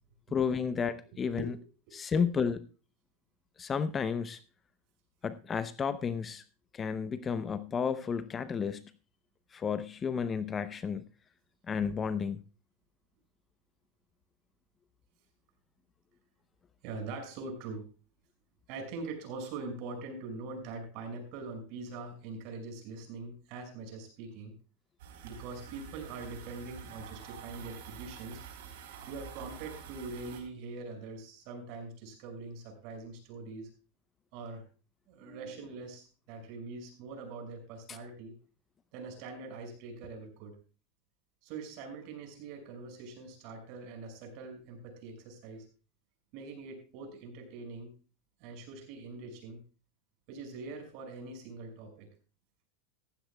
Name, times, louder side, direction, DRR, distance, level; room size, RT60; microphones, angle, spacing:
voice 1, 0.3-1.5 1.9-2.6 3.6-4.4 5.2-6.4 6.7-8.8 9.5-11.0 11.7-12.4 35.2-35.4 37.9-38.0, left 6 dB, 25° left, 0.7 m, -32 dB
voice 2, 1.1-2.2 16.8-17.8 18.7-24.5 25.2-28.4 29.1-33.7 34.3-34.6 35.1-38.3 38.9-40.6 41.4-45.6 46.3-47.9 48.4-49.6 50.3-52.1, right 3 dB, 55° right, 5.8 m, -43 dB
sound 1, 25.0-30.4, right 7 dB, 75° right, 3.8 m, -47 dB
15.0 x 15.0 x 2.3 m
supercardioid pair, 130°, 0 cm